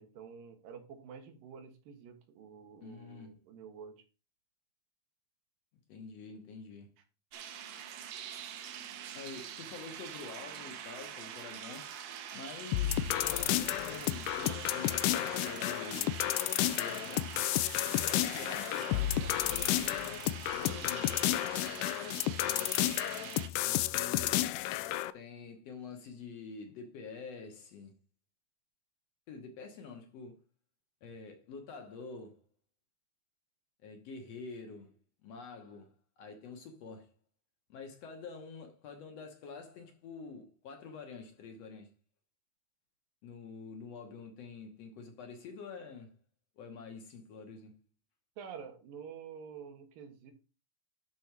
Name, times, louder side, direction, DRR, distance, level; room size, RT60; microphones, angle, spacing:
voice 1, 0.0-4.0 48.4-50.3, right 7 dB, 90° right, 3.1 m, -49 dB
voice 2, 2.8-3.3 5.9-6.9 9.2-12.0 12.3-16.2 16.8-17.5 17.9-20.2 20.5-21.6 22.0-22.7 23.6-24.5 25.1-27.9 29.3-30.4 31.0-32.4 33.8-34.9 35.2-35.9 36.2-37.1 37.7-41.9 43.2-46.1 46.6-47.8, left 4 dB, 60° left, 1.9 m, -47 dB
sound 1, 7.3-23.5, right 9 dB, 65° right, 1.9 m, -44 dB
sound 2, 12.7-25.1, left 15 dB, 80° left, 2.1 m, -32 dB
12.0 x 4.1 x 4.6 m
omnidirectional pair, 3.9 m